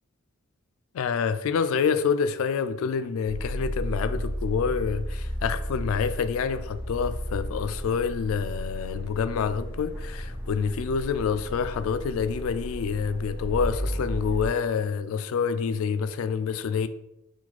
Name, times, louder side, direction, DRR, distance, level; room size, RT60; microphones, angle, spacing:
voice 1, 0.9-16.9, left 6 dB, 70° left, 0.3 m, -27 dB
sound 1, 3.2-14.5, equal, 10° right, 0.8 m, -33 dB
4.7 x 2.2 x 4.1 m
head